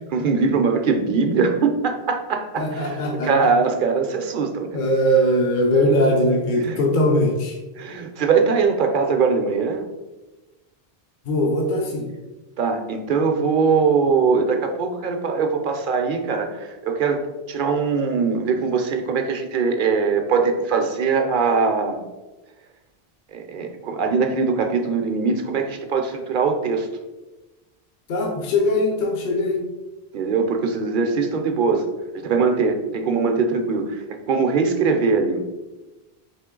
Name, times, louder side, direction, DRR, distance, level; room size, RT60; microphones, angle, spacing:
voice 1, 0.1-3.0 3.2-4.8 5.9-6.0 6.6-6.8 7.7-9.9 12.6-22.0 23.3-26.9 30.1-31.9 32.1-35.4, right 5 dB, 60° right, 5 dB, 0.7 m, -21 dB
voice 2, 2.6-3.3 4.7-7.6 11.2-12.1 28.1-29.6, left 1 dB, 55° left, 0 dB, 0.8 m, -20 dB
4.3 x 3.1 x 3.7 m, 1.1 s
omnidirectional pair, 1.1 m